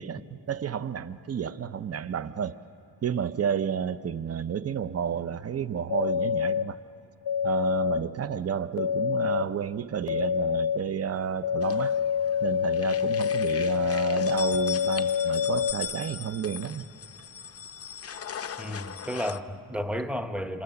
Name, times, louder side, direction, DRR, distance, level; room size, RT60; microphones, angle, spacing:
voice 1, 0.0-2.6 3.0-6.8 7.4-11.9 12.4-16.8, right 8 dB, 40° right, 0.6 m, -31 dB
sound 1, 5.9-6.6 7.2-8.0 8.8-9.4 10.1-10.8 11.4-15.7, left 8 dB, 70° left, 0.8 m, -26 dB
sound 2, 11.6-12.4 12.7-19.4, left 7 dB, 35° left, 0.6 m, -39 dB
voice 2, 18.6-20.6, equal, 5° right, 0.9 m, -32 dB
27.5 x 26.5 x 7.0 m
wide cardioid pair, 170°, 40 cm